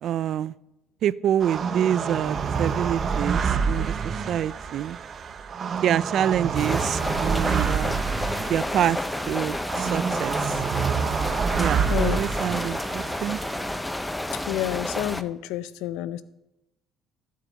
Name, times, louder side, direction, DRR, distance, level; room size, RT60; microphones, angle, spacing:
voice 1, 0.0-0.5 1.0-5.0 5.8-8.0 8.5-10.6 11.6-13.4, right 10 dB, 65° right, 20 dB, 0.3 m, -27 dB
sound 1, 1.4-13.8, right 6 dB, 45° right, 0.7 m, -28 dB
sound 2, 6.5-15.2, left 1 dB, 10° left, 0.5 m, -30 dB
voice 2, 14.3-16.2, left 14 dB, 90° left, 16 dB, 0.5 m, -29 dB
13.5 x 7.5 x 4.0 m, 0.92 s
supercardioid pair, 85°, 0 cm